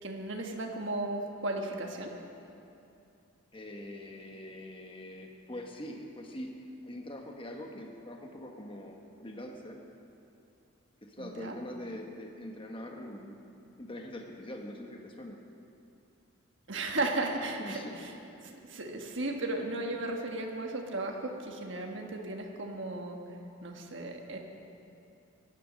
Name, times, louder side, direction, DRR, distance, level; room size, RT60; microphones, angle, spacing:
voice 1, 0.0-2.1 11.2-11.6 16.7-18.2 18.4-23.2 23.6-24.4, right 2 dB, 60° right, 2 dB, 1.4 m, -35 dB
voice 2, 3.5-9.8 11.0-13.4 13.8-15.4 17.6-18.0 18.4-18.5, left 1 dB, 25° left, 2 dB, 1.1 m, -43 dB
17.0 x 11.0 x 6.3 m, 2.7 s
head